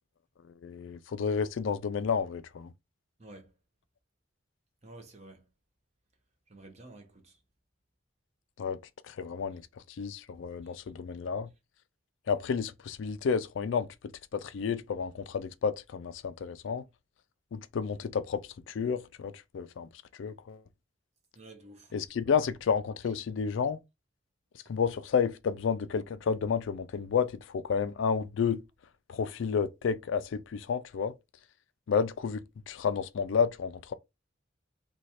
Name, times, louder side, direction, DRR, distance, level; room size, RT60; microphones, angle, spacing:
voice 1, 0.4-2.7 8.6-8.8 9.0-11.5 12.3-13.9 14.3-16.8 17.5-20.6 21.9-23.8 24.7-28.6 29.1-31.1 31.9-33.9, left 6 dB, 65° left, 0.3 m, -31 dB
voice 2, 3.2-3.5 4.8-5.5 6.5-7.4 10.6-10.8 21.4-21.9, right 2 dB, 35° right, 0.8 m, -51 dB
3.1 x 2.3 x 4.1 m
head